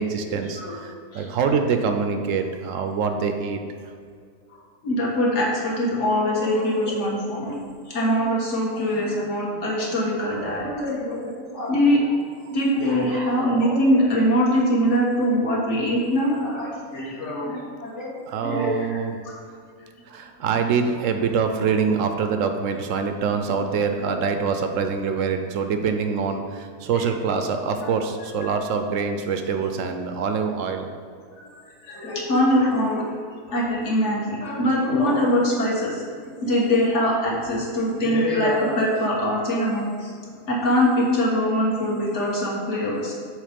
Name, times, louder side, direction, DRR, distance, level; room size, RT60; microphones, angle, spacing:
voice 1, 0.0-3.6 9.4-9.8 10.5-10.9 12.9-13.4 18.3-19.2 20.1-30.9, right 5 dB, 70° right, 6 dB, 0.8 m, -25 dB
voice 2, 4.8-7.5 7.9-12.0 12.5-19.4 31.4-31.5 31.8-33.0 33.5-40.1 40.5-43.1, equal, 50° left, -4 dB, 1.7 m, -23 dB
6.3 x 4.0 x 5.1 m, 2.2 s
omnidirectional pair, 1.6 m